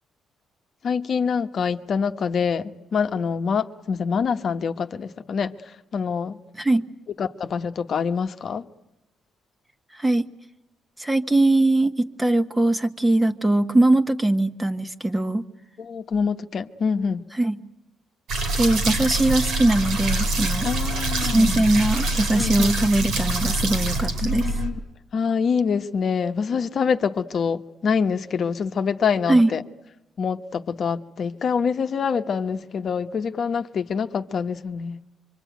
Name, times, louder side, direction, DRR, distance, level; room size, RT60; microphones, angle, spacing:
voice 1, 0.8-5.5 5.9-6.4 7.2-8.6 15.8-17.2 20.6-21.7 22.3-22.7 24.2-24.7 25.1-29.6 30.2-35.0, left 6 dB, 55° left, 1.1 m, -25 dB
voice 2, 9.9-10.3 11.0-15.5 17.3-17.6 18.6-20.7 21.2-24.5 29.3-29.5, right 2 dB, 15° right, 1.4 m, -21 dB
sound 1, 18.3-24.7, right 2 dB, 80° right, 5.2 m, -25 dB
25.5 x 24.5 x 9.3 m
cardioid pair, 90°, 0 cm